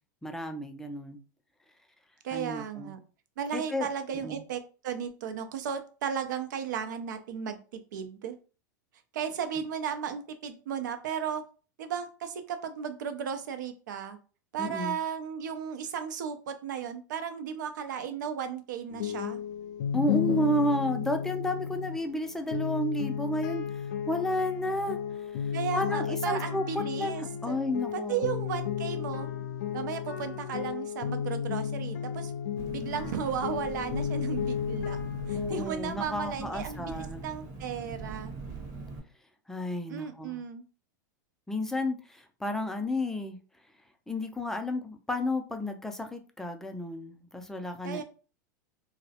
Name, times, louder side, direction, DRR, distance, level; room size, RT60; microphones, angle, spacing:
voice 1, 0.2-1.2 2.3-3.0 3.5-3.9 4.2-4.4 14.6-15.0 19.9-28.3 35.3-37.3 39.5-40.4 41.5-43.4 44.1-48.0, left 1 dB, 5° left, 5 dB, 0.3 m, -32 dB
voice 2, 2.2-3.0 3.4-7.6 7.9-8.4 9.1-11.4 11.8-14.2 14.5-19.4 25.5-27.6 28.1-29.3 29.7-32.3 32.7-38.3 39.9-40.6 47.8-48.0, right 8 dB, 75° right, 8 dB, 0.4 m, -35 dB
sound 1, 18.9-35.6, left 8 dB, 75° left, 0.4 m, -33 dB
Engine, 32.6-39.0, right 4 dB, 40° right, 0.8 m, -42 dB
2.2 x 2.0 x 2.7 m, 0.36 s
hypercardioid pair, 110°, 10 cm